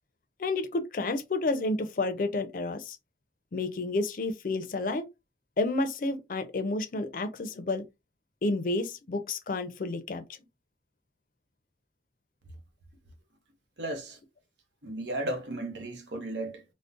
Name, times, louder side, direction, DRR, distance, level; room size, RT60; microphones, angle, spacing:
voice 1, 0.4-3.0 3.5-5.0 5.6-7.8 8.4-10.2, left 2 dB, 50° left, 0.4 m, -30 dB
voice 2, 13.8-14.2 14.8-16.6, right 1 dB, 90° right, 0.8 m, -34 dB
3.7 x 2.1 x 2.4 m
head